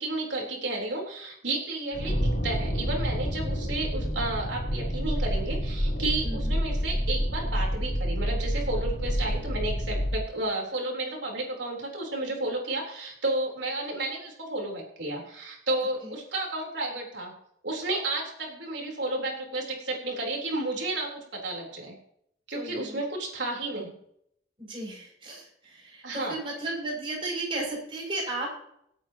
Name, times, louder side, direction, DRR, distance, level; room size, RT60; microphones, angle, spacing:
voice 1, 0.0-17.3 17.6-21.9 22.5-23.9 26.0-26.4, right 2 dB, 85° right, -1 dB, 3.8 m, -32 dB
sound 1, 1.9-10.2, equal, 85° left, 3.4 m, -28 dB
voice 2, 6.2-6.6 16.0-16.2 22.5-23.0 24.6-28.5, right 2 dB, 30° right, -2 dB, 6.6 m, -35 dB
26.0 x 9.1 x 3.0 m, 0.73 s
head